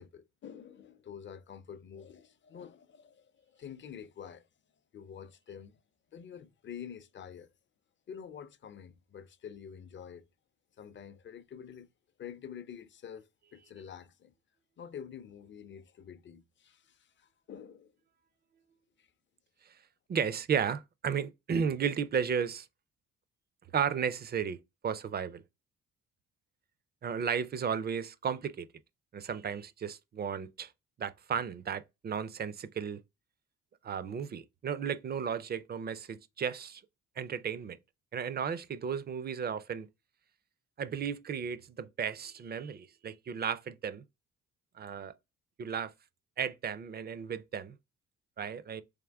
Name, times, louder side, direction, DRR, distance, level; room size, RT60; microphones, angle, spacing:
voice 1, 0.0-4.5 4.9-5.8 6.1-7.5 8.1-10.2 10.8-11.9 12.2-14.3 14.8-17.9 19.0-19.1, left 8 dB, 40° left, 0.5 m, -47 dB
voice 2, 20.1-22.7 23.7-24.6 24.8-25.4 27.0-28.7 29.1-30.7 31.0-33.0 33.8-36.8 37.2-37.8 38.1-39.9 40.8-44.0 44.8-45.1 45.6-45.9 46.4-47.8 48.4-48.8, right 7 dB, 35° right, 0.4 m, -34 dB
3.6 x 3.3 x 3.3 m
cardioid pair, 90°, 30 cm